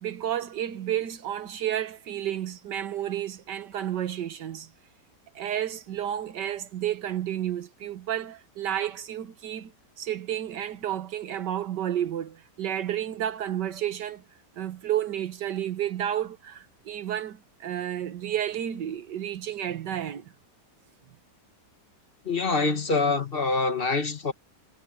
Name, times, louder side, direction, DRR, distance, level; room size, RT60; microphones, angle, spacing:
voice 1, 0.0-4.7 5.3-9.7 10.0-14.2 14.6-20.3, right 11 dB, 85° right, 1.8 m, -31 dB
voice 2, 22.2-24.3, left 3 dB, 35° left, 1.6 m, -25 dB
omnidirectional pair, 1.8 m